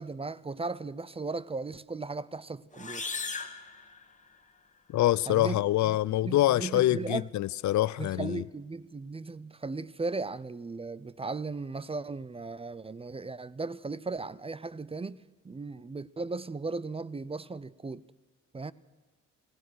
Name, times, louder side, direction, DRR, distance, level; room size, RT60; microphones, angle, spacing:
voice 1, 0.0-3.1 5.3-7.3 8.0-18.0 18.5-18.7, right 3 dB, 20° right, 0.6 m, -37 dB
sound 1, 2.7-4.6, left 4 dB, 25° left, 2.3 m, -38 dB
voice 2, 4.9-8.4, left 14 dB, 70° left, 0.6 m, -25 dB
28.5 x 16.0 x 6.4 m
cardioid pair, 90°, 30 cm